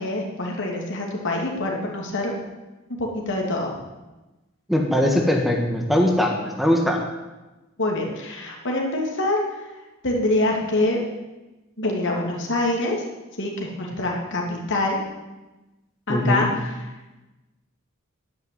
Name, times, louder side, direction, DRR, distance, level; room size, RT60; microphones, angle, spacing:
voice 1, 0.0-2.3 2.9-3.7 7.8-9.7 10.0-11.0 11.8-13.0 13.4-15.0 16.1-16.9, left 2 dB, 60° left, 0 dB, 2.7 m, -25 dB
voice 2, 4.7-7.0 16.1-16.5, left 1 dB, ahead, 1 dB, 1.5 m, -21 dB
9.7 x 9.1 x 9.2 m, 1.1 s
head